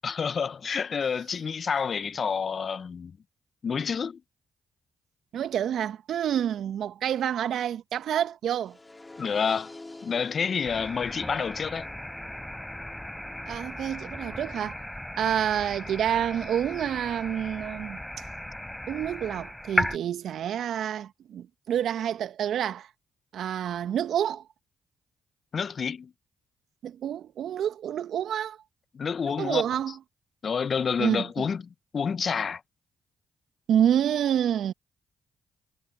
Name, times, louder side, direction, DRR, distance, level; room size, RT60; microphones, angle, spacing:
voice 1, 0.0-3.2 3.6-4.2 9.2-9.8 10.0-11.9 25.5-26.1 28.9-29.6 30.4-31.6 31.9-32.6, left 6 dB, 50° left, 0.9 m, -28 dB
voice 2, 5.3-8.8 13.5-14.8 15.2-18.0 18.9-22.9 23.3-24.4 26.8-28.6 29.2-30.0 31.0-31.5 33.7-34.7, right 9 dB, 70° right, 1.8 m, -28 dB
sound 1, 8.6-14.6, left 2 dB, 20° left, 4.3 m, -48 dB
sound 2, 10.6-20.0, left 1 dB, 5° left, 4.0 m, -35 dB
hypercardioid pair, 45°, 0 cm